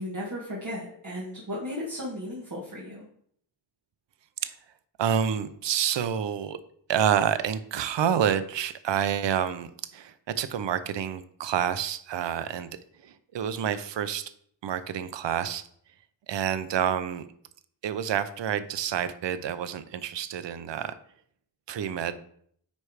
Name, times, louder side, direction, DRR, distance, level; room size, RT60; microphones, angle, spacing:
voice 1, 0.0-3.0, left 1 dB, 40° right, -5 dB, 1.8 m, -35 dB
voice 2, 5.0-6.6 6.9-12.7 13.0-14.3 14.6-15.6 16.3-17.3 17.8-20.9 21.7-22.2, right 8 dB, 60° right, 12 dB, 0.6 m, -28 dB
9.4 x 3.3 x 4.8 m, 0.64 s
wide cardioid pair, 105°, 48 cm